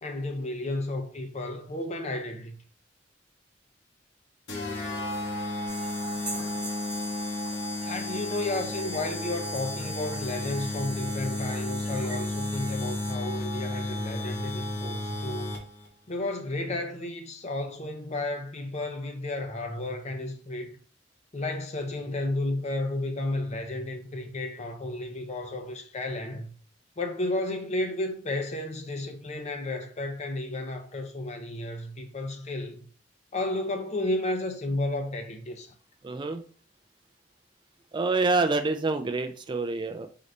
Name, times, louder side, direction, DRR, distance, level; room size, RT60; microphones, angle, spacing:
voice 1, 0.0-2.6 7.8-15.6 16.1-20.8 21.3-26.5 27.0-32.8 33.3-35.7, left 2 dB, 40° left, 0.7 m, -32 dB
sound 1, 4.5-15.9, left 2 dB, 75° left, 1.1 m, -33 dB
sound 2, 5.7-13.1, right 2 dB, 5° right, 1.7 m, -41 dB
voice 2, 36.0-36.4 37.9-40.1, right 3 dB, 25° right, 0.3 m, -27 dB
4.0 x 3.8 x 3.2 m
head